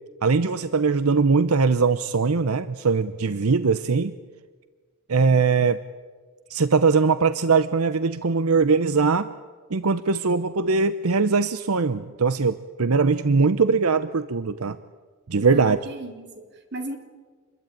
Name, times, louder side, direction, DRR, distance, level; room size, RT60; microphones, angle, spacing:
voice 1, 0.2-4.1 5.1-5.8 6.5-9.3 9.7-14.8 15.3-15.8, right 4 dB, 80° right, 13 dB, 0.8 m, -21 dB
voice 2, 15.4-17.0, right 2 dB, 50° right, 5 dB, 3.5 m, -35 dB
27.0 x 22.0 x 9.1 m, 1.5 s
head